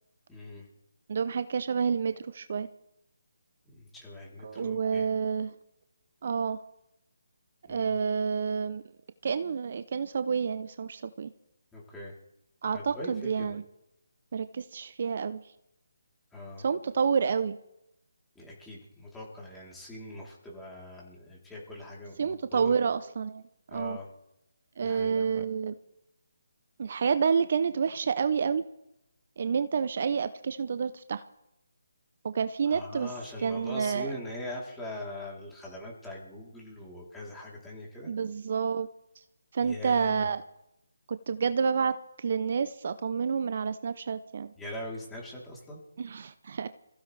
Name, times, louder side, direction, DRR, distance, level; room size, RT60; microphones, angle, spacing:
voice 1, 0.3-0.7 3.8-5.1 7.7-8.0 11.7-12.2 12.7-13.5 16.3-16.7 18.4-22.8 23.7-24.1 24.8-25.4 32.7-38.1 39.6-40.3 44.6-45.8, left 1 dB, 5° left, -4 dB, 3.6 m, -42 dB
voice 2, 1.1-2.7 4.4-5.5 6.2-6.6 7.7-8.8 9.2-11.3 12.6-13.6 14.3-15.4 16.6-17.6 22.2-23.4 23.7-24.0 24.8-25.7 26.8-28.6 29.4-31.3 32.2-33.1 33.4-34.1 38.1-38.9 39.5-40.4 41.1-44.5 46.0-46.7, right 6 dB, 50° right, 12 dB, 0.7 m, -29 dB
27.0 x 15.5 x 3.4 m, 0.86 s
figure-of-eight pair, 155°, 0 cm